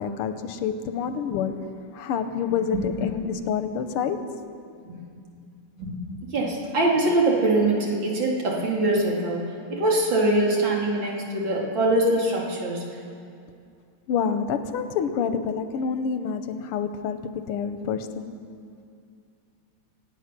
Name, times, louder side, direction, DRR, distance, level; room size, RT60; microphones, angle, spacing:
voice 1, 0.0-1.7 1.9-4.3 14.1-18.4, left 6 dB, 90° left, 10 dB, 1.7 m, -28 dB
voice 2, 6.3-9.4 9.7-12.8, right 2 dB, 60° right, -2 dB, 2.9 m, -23 dB
25.0 x 9.0 x 6.0 m, 2.4 s
omnidirectional pair, 2.4 m